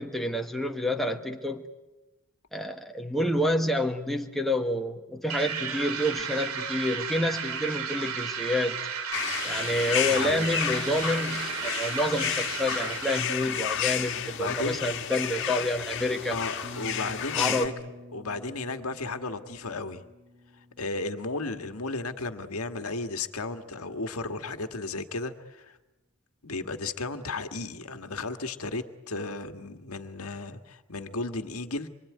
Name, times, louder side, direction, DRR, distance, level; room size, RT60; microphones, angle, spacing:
voice 1, 0.0-1.6 2.5-8.8 9.4-16.4 17.3-17.7, left 1 dB, ahead, 3 dB, 1.4 m, -28 dB
sound 1, 5.3-13.6, right 6 dB, 80° right, 2.2 m, -34 dB
sound 2, 9.1-17.7, left 9 dB, 55° left, 1.8 m, -31 dB
voice 2, 10.1-10.5 14.4-14.8 16.3-17.7 18.1-20.0 20.8-25.8 26.4-31.9, left 3 dB, 80° left, 8 dB, 1.7 m, -34 dB
sound 3, 16.6-22.4, left 1 dB, 25° right, 1.6 m, -48 dB
26.0 x 24.0 x 9.5 m, 1.1 s
head